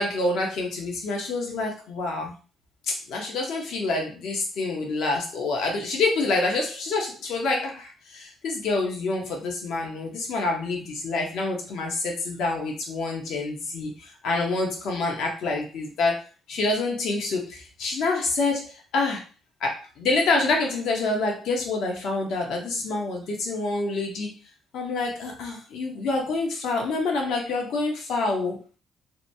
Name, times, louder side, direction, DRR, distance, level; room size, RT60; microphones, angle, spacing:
voice 1, 0.0-2.3 2.9-19.2 19.6-24.4 24.7-28.6, left 3 dB, 80° left, 0 dB, 0.8 m, -27 dB
2.8 x 2.2 x 2.7 m, 0.34 s
cardioid pair, 90°, 0 cm